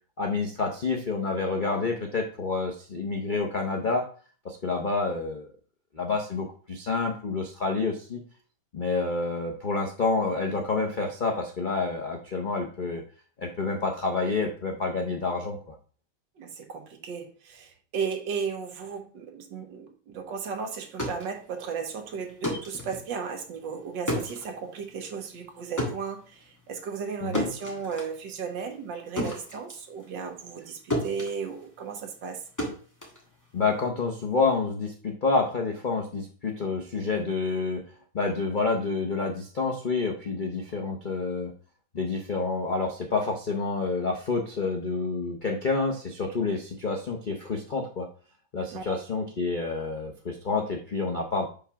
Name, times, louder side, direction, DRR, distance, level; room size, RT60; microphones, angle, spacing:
voice 1, 0.2-4.0 4.4-5.5 5.9-8.2 8.7-13.0 13.4-15.7 27.2-27.5 33.5-37.8 38.1-41.5 41.9-48.1 48.5-51.5, left 3 dB, 85° left, 0.4 m, -28 dB
voice 2, 16.4-32.4 48.7-49.0, right 6 dB, 70° right, 1.6 m, -35 dB
sound 1, 20.8-30.7 30.9-33.9, equal, 10° left, 1.4 m, -35 dB
5.3 x 3.5 x 5.7 m
omnidirectional pair, 2.1 m